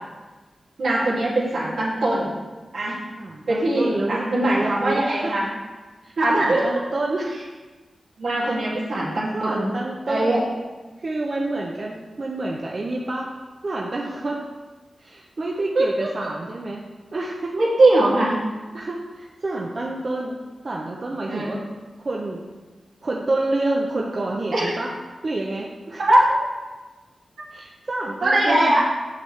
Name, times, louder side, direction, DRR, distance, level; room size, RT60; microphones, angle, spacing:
voice 1, 0.8-2.3 2.7-3.0 3.5-5.5 6.2-6.7 8.2-9.7 10.1-10.4 15.7-16.1 17.5-18.4 21.3-21.6 24.5-24.7 26.0-26.4 28.2-28.8, right 1 dB, 80° right, -6 dB, 2.3 m, -21 dB
voice 2, 3.2-5.3 6.0-7.3 8.4-8.6 9.3-10.5 11.0-13.3 13.6-14.4 15.0-16.8 17.1-17.6 18.7-20.4 20.6-21.6 22.0-22.4 23.0-24.9 25.2-26.0 27.5-28.7, right 2 dB, 45° right, -1 dB, 0.7 m, -28 dB
7.1 x 6.5 x 3.2 m, 1.3 s
wide cardioid pair, 85°, 0 cm